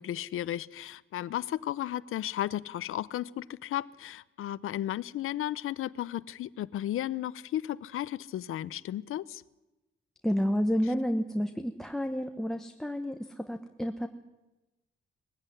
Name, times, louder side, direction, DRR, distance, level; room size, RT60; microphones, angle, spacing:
voice 1, 0.0-9.4, left 12 dB, 90° left, 18 dB, 0.6 m, -34 dB
voice 2, 10.2-14.1, equal, ahead, 8 dB, 1.0 m, -30 dB
20.5 x 15.5 x 9.9 m, 1.0 s
cardioid pair, 120°, 21 cm